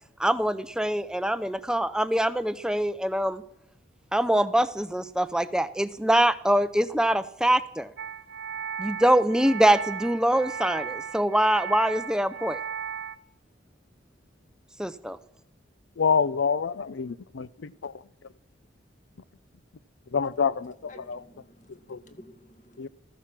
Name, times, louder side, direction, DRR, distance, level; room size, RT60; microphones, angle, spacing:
voice 1, 0.2-3.4 4.1-7.9 8.8-12.6 14.8-15.2, right 1 dB, 5° right, 0.5 m, -24 dB
sound 1, 8.0-13.2, right 6 dB, 60° right, 0.8 m, -35 dB
voice 2, 16.0-17.9 20.1-21.2 21.9-22.0 22.8-22.9, left 6 dB, 75° left, 0.5 m, -27 dB
voice 3, 20.9-22.9, left 1 dB, 40° left, 1.8 m, -51 dB
15.0 x 14.0 x 6.0 m
head